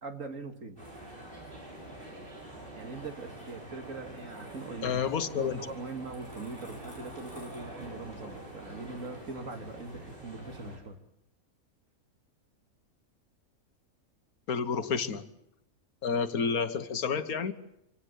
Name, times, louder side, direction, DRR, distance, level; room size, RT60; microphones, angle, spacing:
voice 1, 0.0-0.8 2.8-5.0 5.3-11.0, right 3 dB, 65° right, 5 dB, 2.4 m, -41 dB
sound 1, 0.8-10.8, right 1 dB, 35° right, 6.8 m, -45 dB
voice 2, 4.8-5.6 14.5-15.2 16.0-17.5, left 6 dB, 85° left, 10 dB, 1.7 m, -30 dB
26.0 x 18.0 x 8.3 m, 0.80 s
omnidirectional pair, 1.5 m